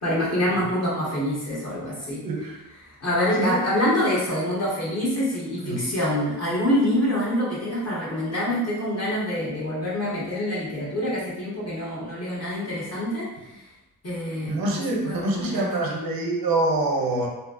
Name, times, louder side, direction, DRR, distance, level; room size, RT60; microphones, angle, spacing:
voice 1, 0.0-13.3 14.0-16.0, left 1 dB, 45° left, -7 dB, 1.5 m, -26 dB
voice 2, 14.5-17.3, right 2 dB, 80° right, 0 dB, 0.8 m, -25 dB
3.3 x 2.7 x 2.5 m, 0.97 s
cardioid pair, 95°, 35 cm